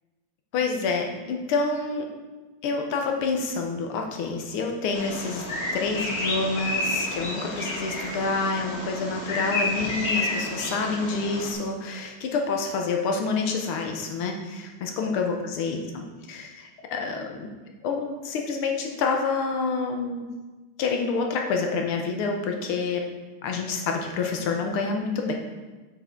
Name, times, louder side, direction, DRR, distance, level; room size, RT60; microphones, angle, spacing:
voice 1, 0.5-2.1 2.6-5.4 5.7-17.5 17.8-20.3 20.8-23.0 23.4-25.3, left 4 dB, 85° left, 2 dB, 1.8 m, -28 dB
Bird vocalization bird call bird song, 4.9-11.5, left 2 dB, 40° left, 1.1 m, -30 dB
8.3 x 5.9 x 3.7 m, 1.2 s
omnidirectional pair, 2.4 m